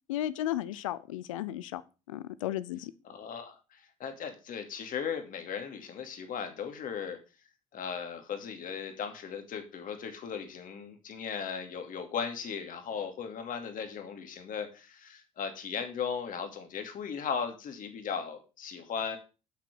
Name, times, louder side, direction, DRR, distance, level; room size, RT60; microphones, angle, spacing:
voice 1, 0.1-1.8 2.1-2.9, left 13 dB, 90° left, 17 dB, 0.7 m, -34 dB
voice 2, 3.0-7.2 7.7-19.2, left 7 dB, 55° left, 6 dB, 2.6 m, -37 dB
8.2 x 6.4 x 6.3 m, 0.32 s
hypercardioid pair, 65°, 16 cm